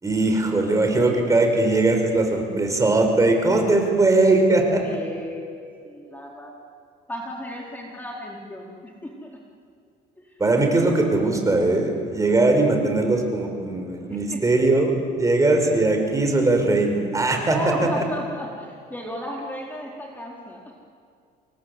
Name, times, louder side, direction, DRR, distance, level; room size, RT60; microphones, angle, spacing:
voice 1, 0.0-4.8 10.4-14.9 15.2-17.6 18.0-18.1, right 2 dB, 20° right, 3 dB, 5.7 m, -20 dB
voice 2, 4.8-6.5 7.1-9.4 10.3-10.4 14.1-14.4 17.5-20.8, equal, 10° left, -2 dB, 4.2 m, -35 dB
28.0 x 23.5 x 8.3 m, 2.3 s
cardioid pair, 110°, 17 cm